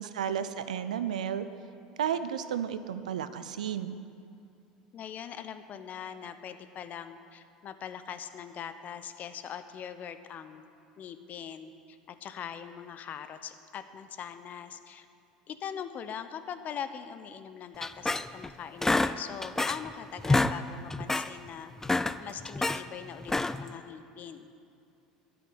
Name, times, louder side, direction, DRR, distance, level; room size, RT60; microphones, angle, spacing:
voice 1, 0.0-1.5 2.0-4.0, right 9 dB, 80° right, 12 dB, 0.5 m, -32 dB
voice 2, 4.9-10.7 11.0-15.1 15.5-21.7 22.2-24.5, left 8 dB, 45° left, 11 dB, 0.8 m, -41 dB
sound 1, 17.8-18.5 18.8-19.9 20.2-20.6 20.9-21.3 21.7-22.8 23.2-23.7, left 2 dB, 10° left, 0.4 m, -28 dB
10.5 x 8.4 x 8.0 m, 2.5 s
hypercardioid pair, 75°, 4 cm